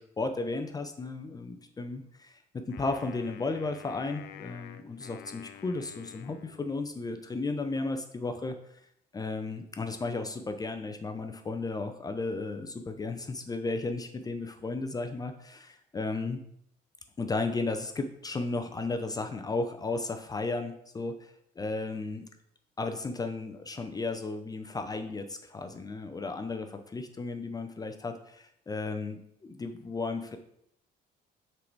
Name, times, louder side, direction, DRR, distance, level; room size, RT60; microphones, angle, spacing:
voice 1, 0.0-8.8 9.1-16.4 17.2-22.2 22.8-30.4, left 3 dB, 20° left, 6 dB, 0.5 m, -34 dB
Wind instrument woodwind instrument, 2.7-7.1, left 11 dB, 80° left, 0.5 m, -49 dB
6.4 x 4.0 x 4.6 m, 0.74 s
cardioid pair, 110°, 17 cm